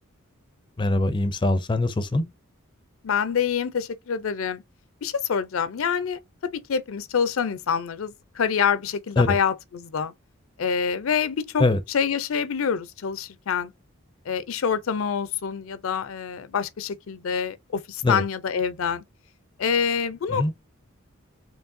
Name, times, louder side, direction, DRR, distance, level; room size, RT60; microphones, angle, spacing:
voice 1, 0.8-2.3 9.2-9.3 11.6-11.8 18.0-18.2 20.3-20.5, left 2 dB, 20° left, 0.4 m, -22 dB
voice 2, 3.0-4.6 5.0-10.1 10.6-13.7 14.3-19.0 19.6-20.5, left 7 dB, 75° left, 0.5 m, -26 dB
4.5 x 3.1 x 2.6 m
head